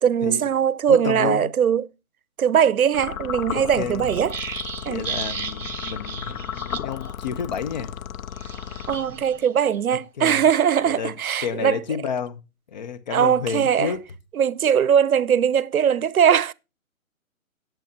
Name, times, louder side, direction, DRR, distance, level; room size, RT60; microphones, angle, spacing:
voice 1, 0.0-1.9 2.4-4.4 4.9-5.1 8.9-11.8 13.1-13.9 14.3-16.5, right 8 dB, 80° right, 0.7 m, -20 dB
voice 2, 0.9-1.5 3.8-4.1 4.8-7.9 10.2-10.4 10.8-11.1 11.4-12.4 12.7-14.0, left 7 dB, 30° left, 0.9 m, -30 dB
sound 1, 2.9-9.4, left 9 dB, 75° left, 0.7 m, -34 dB
sound 2, 4.0-7.1 7.4-7.6 8.4-9.8 10.3-10.7, right 5 dB, 65° right, 1.5 m, -35 dB
18.5 x 7.3 x 2.8 m
hypercardioid pair, 160°, 42 cm